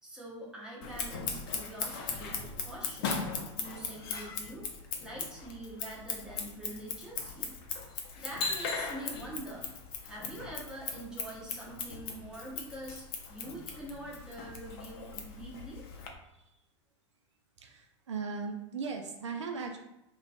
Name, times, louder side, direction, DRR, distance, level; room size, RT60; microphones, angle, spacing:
voice 1, 0.0-4.7 5.0-7.5 8.1-9.7 10.0-13.0 13.3-15.8, right 1 dB, 5° right, -6 dB, 0.8 m, -45 dB
Scissors, 0.8-16.1, left 5 dB, 50° left, 0.4 m, -38 dB
voice 2, 17.6-19.8, right 5 dB, 75° right, 2 dB, 0.4 m, -38 dB
2.4 x 2.2 x 2.4 m, 0.88 s
figure-of-eight pair, 90°, 15 cm